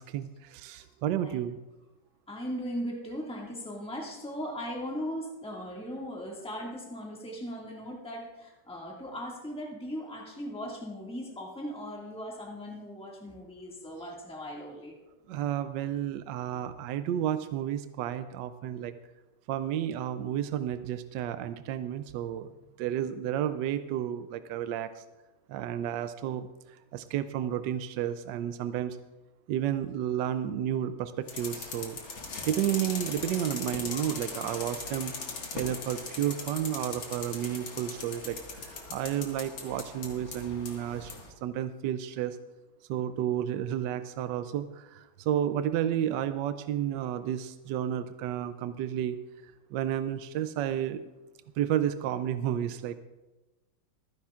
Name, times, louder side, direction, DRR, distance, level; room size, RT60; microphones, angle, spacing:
voice 1, 0.0-1.6 15.3-18.9 19.5-22.5 22.8-25.0 25.5-26.5 26.9-29.0 29.5-32.0 32.4-35.1 35.5-41.1 41.4-42.4 42.9-49.2 49.7-51.0 51.6-53.0, right 10 dB, 75° right, 11 dB, 1.1 m, -31 dB
voice 2, 2.3-14.9, equal, 5° left, -2 dB, 1.7 m, -38 dB
sound 1, 31.3-41.3, left 4 dB, 85° left, 2.5 m, -39 dB
25.0 x 10.0 x 2.4 m, 1.1 s
omnidirectional pair, 2.2 m